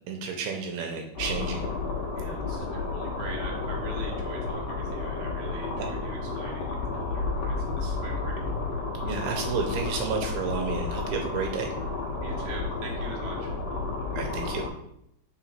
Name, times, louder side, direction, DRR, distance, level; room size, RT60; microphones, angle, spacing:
voice 1, 0.1-1.6 5.8-5.9 9.0-11.7 14.1-14.6, right 5 dB, 85° right, 3 dB, 2.6 m, -31 dB
sound 1, 1.1-14.7, left 3 dB, 80° left, 1.4 m, -32 dB
voice 2, 2.1-8.4 12.2-13.5, right 4 dB, 55° right, -2 dB, 2.4 m, -42 dB
5.0 x 4.4 x 4.4 m, 0.75 s
omnidirectional pair, 4.5 m